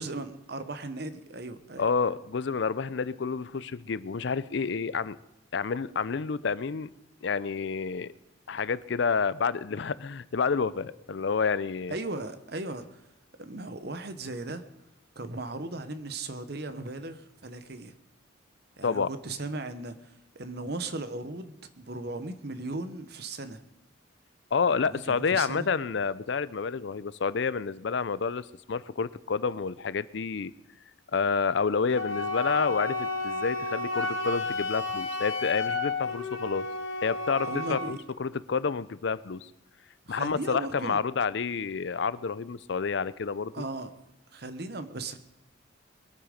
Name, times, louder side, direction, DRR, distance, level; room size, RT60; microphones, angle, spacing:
voice 1, 0.0-1.8 11.9-13.0 13.4-14.6 15.1-18.0 18.8-23.6 24.8-25.7 36.0-36.1 37.5-38.0 40.1-41.0 43.5-43.9 44.3-45.2, right 2 dB, 50° right, 10 dB, 1.0 m, -37 dB
voice 2, 1.8-5.2 5.5-6.9 7.2-8.1 8.5-11.9 18.8-19.1 24.5-30.5 31.1-36.7 37.0-39.5 40.1-43.6, left 5 dB, 65° left, 18 dB, 0.5 m, -29 dB
Wind instrument woodwind instrument, 31.9-38.0, left 3 dB, 80° left, 1.6 m, -32 dB
22.0 x 8.9 x 5.1 m, 0.91 s
head